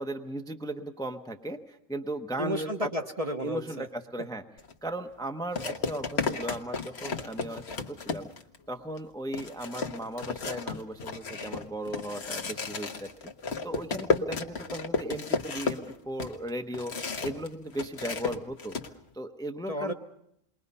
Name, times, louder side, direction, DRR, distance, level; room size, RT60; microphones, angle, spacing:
voice 1, 0.0-2.9 3.4-4.4 4.8-8.3 8.7-13.1 13.6-17.0 17.2-18.8 19.1-19.9, right 1 dB, 5° left, 5 dB, 0.9 m, -36 dB
voice 2, 2.4-3.9 19.7-19.9, equal, 30° right, 4 dB, 1.2 m, -32 dB
sound 1, 4.6-4.7 5.6-8.6 9.0-9.1 9.3-17.5 17.7-18.9, left 4 dB, 55° left, 1.5 m, -33 dB
28.5 x 21.5 x 5.5 m, 0.74 s
omnidirectional pair, 1.3 m